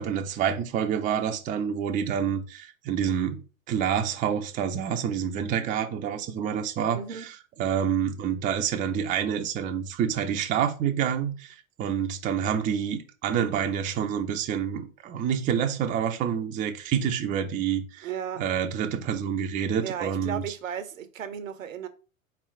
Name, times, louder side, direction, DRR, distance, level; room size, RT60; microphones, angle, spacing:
voice 1, 0.0-3.4 3.7-7.0 7.6-18.1 18.4-20.4, right 8 dB, 20° right, 0.5 m, -27 dB
voice 2, 6.9-7.2 18.0-18.4 19.8-21.9, right 8 dB, 70° right, 0.8 m, -35 dB
4.2 x 3.3 x 3.7 m
figure-of-eight pair, 100°, 41 cm